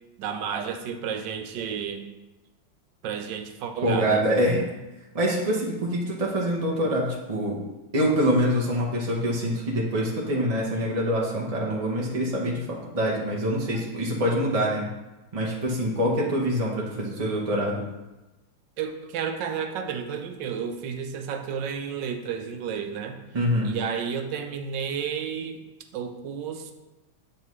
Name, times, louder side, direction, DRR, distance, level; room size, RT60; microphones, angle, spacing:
voice 1, 0.2-2.1 3.0-4.2 18.8-23.2 23.6-25.6 25.9-26.7, right 7 dB, 75° right, 6 dB, 1.3 m, -31 dB
voice 2, 3.8-4.7 5.1-7.6 7.9-14.9 15.3-17.8 23.3-23.7, equal, 45° right, -4 dB, 0.4 m, -25 dB
7.5 x 5.4 x 3.1 m, 1.1 s
omnidirectional pair, 2.1 m